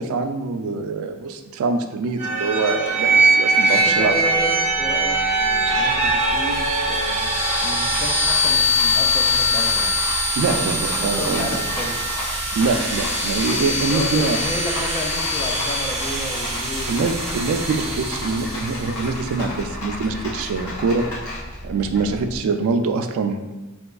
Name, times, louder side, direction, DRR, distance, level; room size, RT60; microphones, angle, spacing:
voice 1, 0.0-4.1 10.4-11.6 12.5-14.4 16.9-21.2 21.6-23.6, right 4 dB, 65° right, 7 dB, 0.3 m, -24 dB
sound 1, 2.2-18.9, right 1 dB, 30° right, 0.6 m, -22 dB
voice 2, 3.9-7.3 7.6-10.0 10.5-10.7 11.0-12.1 13.9-17.0, left 1 dB, 25° left, 1 dB, 0.4 m, -31 dB
Rattle, 4.1-22.4, left 1 dB, 90° left, 0.9 m, -33 dB
Rattle (instrument), 5.6-19.7 20.0-20.1 20.4-20.5, left 1 dB, 70° left, 1.4 m, -34 dB
3.4 x 2.9 x 2.3 m, 1.1 s
head